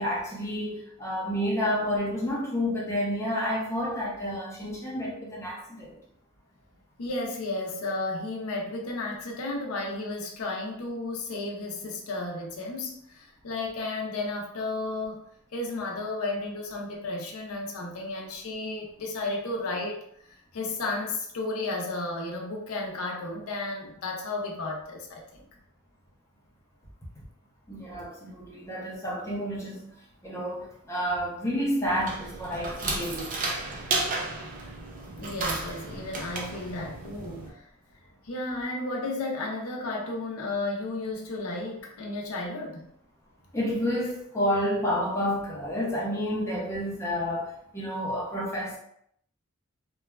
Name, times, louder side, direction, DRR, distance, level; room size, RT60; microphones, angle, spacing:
voice 1, 0.0-6.0 27.7-29.9 30.2-33.4 43.5-48.8, equal, 15° left, -5 dB, 0.6 m, -30 dB
voice 2, 7.0-15.2 15.5-25.5 35.2-37.7 38.2-42.9, left 2 dB, 85° left, 0 dB, 0.6 m, -33 dB
sound 1, 31.9-37.5, right 2 dB, 40° right, 0.4 m, -33 dB
3.0 x 2.2 x 2.3 m, 0.71 s
head